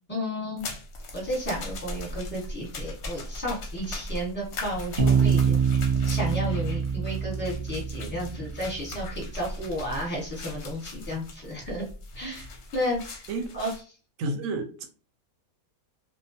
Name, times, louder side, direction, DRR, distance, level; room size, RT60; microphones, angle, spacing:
voice 1, 0.1-0.7 1.1-5.6 6.1-11.8 12.1-13.2 13.5-13.7, equal, 10° left, 0.8 m, -32 dB
sound 1, 0.6-13.8, left 1 dB, 65° left, 0.8 m, -39 dB
Bass guitar, 5.0-8.7, right 6 dB, 40° right, 0.8 m, -25 dB
voice 2, 14.2-14.9, right 2 dB, 70° right, 0.8 m, -30 dB
2.3 x 2.2 x 2.6 m
omnidirectional pair, 1.6 m